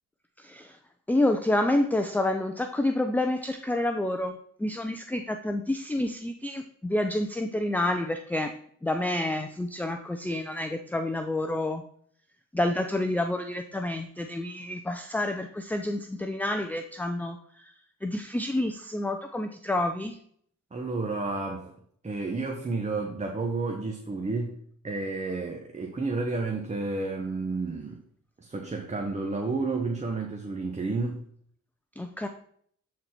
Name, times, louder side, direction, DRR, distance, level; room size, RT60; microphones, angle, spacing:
voice 1, 0.4-0.8 1.1-8.5 8.8-11.8 12.5-20.2 32.0-32.3, left 1 dB, 5° left, 6 dB, 0.5 m, -29 dB
voice 2, 20.7-21.8 22.0-24.5 24.8-28.0 28.4-31.2, right 3 dB, 25° right, 2 dB, 1.1 m, -31 dB
11.0 x 4.2 x 4.4 m, 0.63 s
cardioid pair, 90°, 30 cm